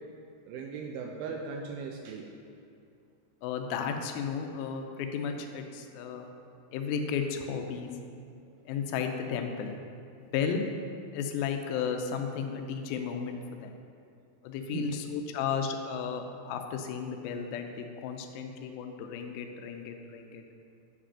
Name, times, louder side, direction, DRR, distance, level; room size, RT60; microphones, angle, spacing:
voice 1, 0.5-2.3 14.7-15.0, right 5 dB, 85° right, 1 dB, 2.3 m, -38 dB
voice 2, 3.4-6.3 6.7-7.9 8.7-9.8 10.2-10.6 11.1-13.7 14.4-20.4, left 6 dB, 90° left, 4 dB, 2.1 m, -34 dB
8.2 x 5.1 x 5.6 m, 2.5 s
omnidirectional pair, 4.9 m